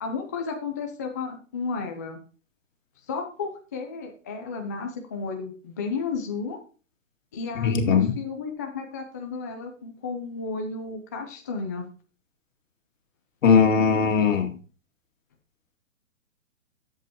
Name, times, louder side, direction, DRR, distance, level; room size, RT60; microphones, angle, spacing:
voice 1, 0.0-2.2 3.1-6.6 7.3-11.9, left 5 dB, 15° left, 3 dB, 0.4 m, -33 dB
voice 2, 7.6-8.1 13.4-14.5, left 6 dB, 70° left, 3 dB, 2.3 m, -19 dB
11.0 x 7.6 x 2.9 m, 0.38 s
hypercardioid pair, 145°, 40 cm